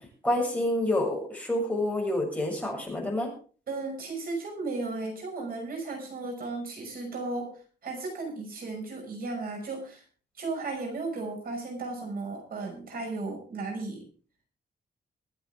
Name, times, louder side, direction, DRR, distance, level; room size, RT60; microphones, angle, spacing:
voice 1, 0.2-3.3, left 1 dB, 10° left, -1 dB, 6.9 m, -28 dB
voice 2, 3.7-7.5 7.8-10.0 10.4-14.1, right 3 dB, 60° right, 1 dB, 5.8 m, -35 dB
23.5 x 8.5 x 3.6 m, 0.40 s
cardioid pair, 115°, 17 cm